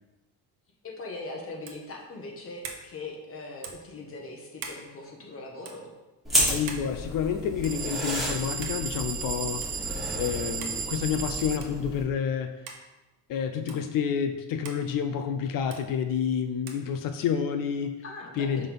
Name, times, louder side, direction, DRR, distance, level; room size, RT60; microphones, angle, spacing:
voice 1, 0.8-5.9 13.6-13.8 18.0-18.7, left 2 dB, 35° left, -1 dB, 1.4 m, -40 dB
sound 1, 1.6-1.9 2.6-2.9 3.6-3.9 4.6-4.8 5.6-5.8 6.7-6.9 7.6-7.9 8.6-8.8 9.6-9.7 10.6-10.8 11.6-11.8 12.7-12.8 13.7-13.8 14.6-14.8 15.7-15.8 16.7-16.8, right 5 dB, 65° right, 1.1 m, -41 dB
sound 2, 6.2-12.0, equal, ahead, 1.9 m, -32 dB
voice 2, 6.4-9.6 9.9-12.5 13.3-18.0 18.4-18.7, left 7 dB, 60° left, 7 dB, 0.6 m, -29 dB
sound 3, 7.6-11.6, right 6 dB, 25° right, 0.4 m, -34 dB
5.5 x 3.6 x 5.6 m, 1.1 s
cardioid pair, 125°, 38 cm